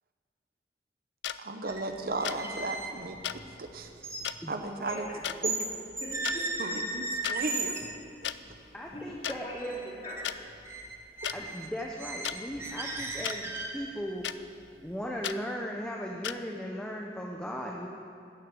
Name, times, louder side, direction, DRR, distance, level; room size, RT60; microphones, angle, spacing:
sound 1, 1.2-1.4 2.2-2.4 3.2-3.4 4.2-4.4 5.2-5.4 6.1-6.4 7.2-7.4 8.2-8.4 9.2-9.4 10.2-10.4 11.2-11.4 12.2-12.4 13.2-13.4 14.2-14.4 15.2-15.4 16.2-16.4, left 10 dB, 85° left, 0.4 m, -34 dB
voice 1, 1.4-3.2 3.6-3.9 4.5-5.1 5.4-5.6 6.6-7.8, right 2 dB, 55° right, 6 dB, 0.8 m, -35 dB
sound 2, 1.7-1.9 2.2-5.7 6.0-7.9 8.5-8.6 8.9-9.3 9.6-10.2 10.5-13.9, right 2 dB, 15° right, 1.1 m, -36 dB
voice 2, 4.9-5.2 6.0-6.7 8.9-10.4, left 1 dB, 35° left, -5 dB, 2.9 m, -42 dB
voice 3, 8.7-9.8 11.3-14.3 14.8-17.9, equal, 5° left, -1 dB, 0.7 m, -37 dB
13.0 x 6.5 x 9.0 m, 2.5 s
head